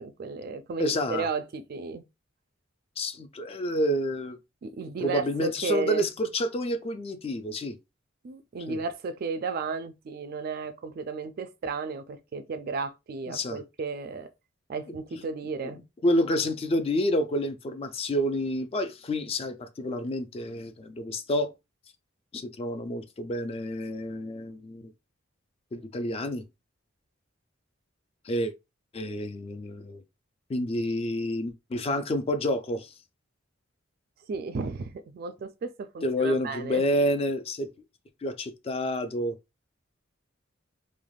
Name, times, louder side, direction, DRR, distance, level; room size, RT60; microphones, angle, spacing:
voice 1, 0.0-2.0 4.6-6.1 8.2-14.3 14.7-15.8 34.3-36.9, right 4 dB, 50° right, 0.3 m, -34 dB
voice 2, 0.8-1.3 3.0-4.4 5.0-7.8 8.7-8.8 13.3-13.6 15.6-15.7 16.0-21.5 22.3-24.9 25.7-26.4 28.2-28.5 28.9-30.0 30.5-32.9 36.0-37.7 38.2-39.4, equal, 30° left, 0.3 m, -29 dB
3.3 x 2.1 x 2.3 m
head